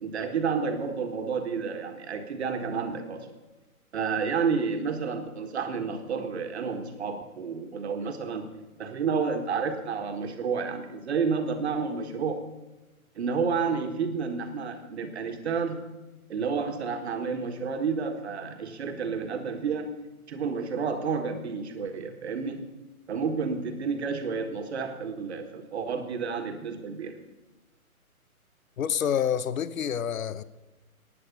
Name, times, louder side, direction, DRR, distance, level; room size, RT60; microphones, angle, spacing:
voice 1, 0.0-3.3 3.9-8.5 8.8-12.4 13.1-15.8 16.3-19.9 20.3-22.6 23.1-27.2, right 5 dB, 45° right, 1.6 m, -30 dB
voice 2, 28.8-30.4, left 8 dB, 65° left, 0.8 m, -28 dB
15.5 x 9.8 x 5.3 m
hypercardioid pair, 145°, 44 cm